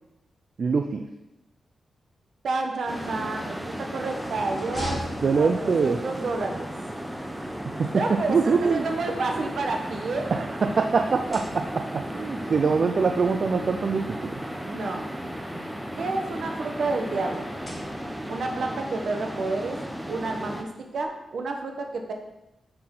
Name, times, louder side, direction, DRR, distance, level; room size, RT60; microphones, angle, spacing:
voice 1, 0.6-1.0 5.2-6.0 7.8-7.9 8.3-8.8 10.3-14.4, right 5 dB, 55° right, 6 dB, 0.4 m, -24 dB
voice 2, 2.4-5.0 5.4-6.7 7.9-10.3 14.6-15.0 16.0-17.4 18.3-19.8 20.1-20.7 20.9-22.1, right 3 dB, 70° right, 3 dB, 1.1 m, -29 dB
sound 1, 2.8-6.0 7.3-8.5 9.3-10.7 11.1-12.0 13.0-13.1 13.4-13.5 14.7-16.0 17.2-18.4, left 1 dB, 25° left, 2.6 m, -42 dB
sound 2, 2.9-20.6, equal, 5° right, 0.8 m, -35 dB
6.7 x 5.7 x 3.8 m, 0.92 s
cardioid pair, 90°, 0 cm